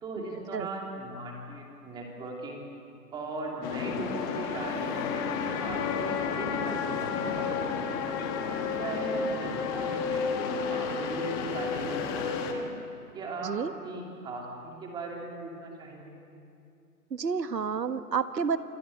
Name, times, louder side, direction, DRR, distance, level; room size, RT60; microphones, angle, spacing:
voice 1, 0.0-2.6 3.1-5.2 5.6-7.8 8.1-8.2 8.8-12.7 13.1-13.5 13.8-16.1, right 2 dB, 10° right, 0 dB, 2.9 m, -39 dB
sound 1, 3.6-12.5, left 5 dB, 15° left, 1.2 m, -31 dB
voice 2, 17.1-18.6, right 6 dB, 85° right, 10 dB, 1.7 m, -29 dB
28.0 x 21.5 x 8.7 m, 2.5 s
hypercardioid pair, 160°, 49 cm